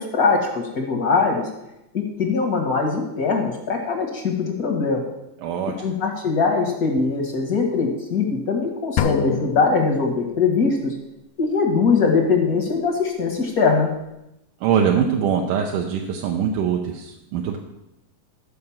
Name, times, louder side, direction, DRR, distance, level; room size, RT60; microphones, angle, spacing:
voice 1, 0.0-1.5 1.9-5.0 5.8-10.9 11.4-13.9, left 4 dB, 50° left, 0 dB, 1.1 m, -21 dB
voice 2, 5.4-6.0 14.6-17.6, right 7 dB, 80° right, 2 dB, 2.4 m, -23 dB
sound 1, 9.0-10.7, left 8 dB, 80° left, 1.9 m, -27 dB
12.5 x 5.3 x 7.2 m, 0.88 s
omnidirectional pair, 3.7 m